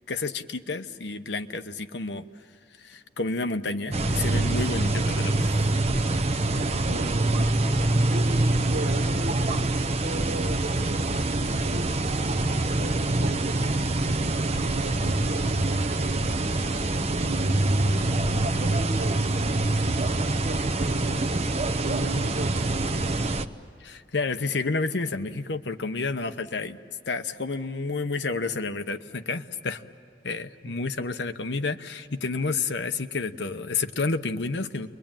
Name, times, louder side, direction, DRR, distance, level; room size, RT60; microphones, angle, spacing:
voice 1, 0.1-2.2 2.8-5.7 23.8-26.8 27.1-29.8 30.2-34.9, left 3 dB, 70° left, 9 dB, 1.0 m, -30 dB
sound 1, 3.9-23.4, right 2 dB, 35° right, 0.8 m, -25 dB
voice 2, 6.4-7.6 8.1-16.5 17.1-21.3 21.8-23.1, right 2 dB, 65° right, 7 dB, 1.2 m, -38 dB
29.5 x 22.5 x 9.0 m, 2.4 s
head